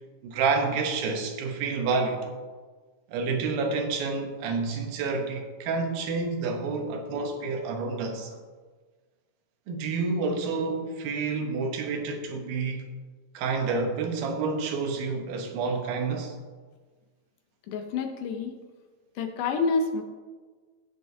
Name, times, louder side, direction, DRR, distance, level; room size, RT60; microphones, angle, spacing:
voice 1, 0.2-2.3 3.1-8.3 9.7-12.8 13.3-16.3, right 4 dB, 90° right, 4 dB, 2.8 m, -29 dB
voice 2, 17.7-18.5 19.2-20.0, left 4 dB, 75° left, 5 dB, 2.1 m, -28 dB
16.0 x 6.7 x 2.7 m, 1.4 s
omnidirectional pair, 4.1 m